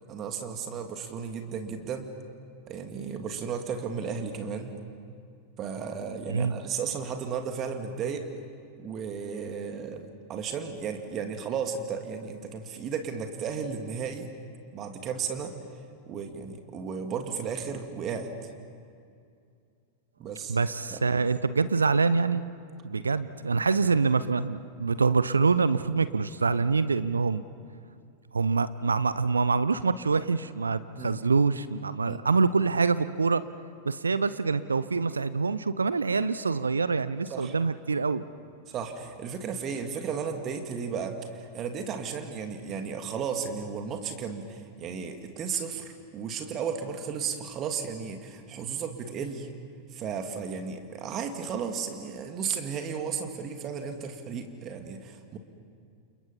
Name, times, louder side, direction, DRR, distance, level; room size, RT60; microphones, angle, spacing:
voice 1, 0.1-2.1 2.7-4.7 5.6-8.3 8.8-14.3 14.7-15.5 16.1-18.3 20.2-20.6 20.9-21.0 31.0-31.2 32.0-32.2 37.3-37.5 38.7-49.5 49.9-55.4, right 6 dB, 30° right, 5 dB, 2.4 m, -34 dB
voice 2, 6.3-6.6 20.5-22.5 22.8-27.4 28.3-33.4 33.8-38.2, right 4 dB, 75° right, 15 dB, 0.7 m, -25 dB
30.0 x 29.0 x 5.7 m, 2.4 s
figure-of-eight pair, 90°, 0 cm